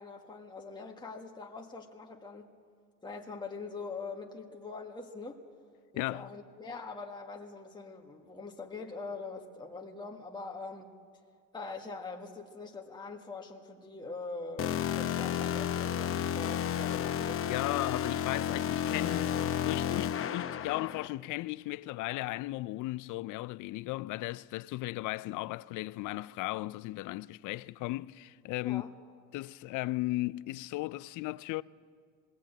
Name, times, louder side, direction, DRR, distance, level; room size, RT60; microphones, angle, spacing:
voice 1, 0.0-2.6 3.0-5.4 5.9-10.9 11.5-17.4 28.6-28.9, left 3 dB, 10° left, 1.6 m, -43 dB
voice 2, 5.9-6.3 17.5-19.4 19.6-28.8 29.3-31.6, left 19 dB, 55° left, 0.5 m, -36 dB
sound 1, 14.6-21.1, left 9 dB, 35° left, 0.9 m, -32 dB
19.5 x 16.5 x 8.9 m
supercardioid pair, 95°, 36 cm